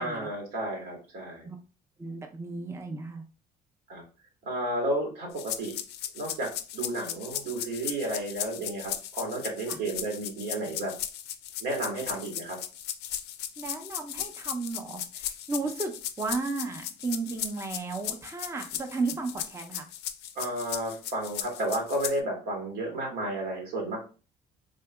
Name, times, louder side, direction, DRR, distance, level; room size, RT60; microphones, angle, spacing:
voice 1, 0.0-1.5 3.9-4.0 4.4-5.8 6.1-10.9 11.6-12.6 20.3-24.0, right 1 dB, 85° right, 0 dB, 1.5 m, -32 dB
voice 2, 2.0-3.2 9.7-9.8 13.6-19.9, right 3 dB, 15° right, 4 dB, 0.5 m, -34 dB
sound 1, 5.4-22.2, left 11 dB, 80° left, 0.4 m, -37 dB
3.6 x 2.8 x 2.2 m, 0.34 s
cardioid pair, 110°, 17 cm